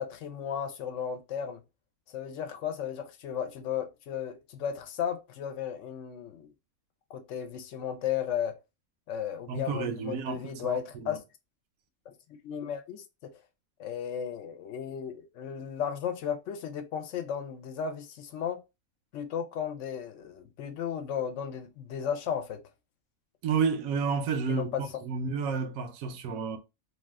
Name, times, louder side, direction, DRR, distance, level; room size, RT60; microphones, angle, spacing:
voice 1, 0.0-1.6 2.1-6.5 7.1-8.6 9.1-11.2 12.4-13.3 13.8-18.6 19.1-22.6 24.5-24.8, left 8 dB, 65° left, 0.9 m, -34 dB
voice 2, 9.5-11.2 23.4-26.6, right 5 dB, 80° right, 1.0 m, -31 dB
2.7 x 2.3 x 3.4 m
omnidirectional pair, 1.5 m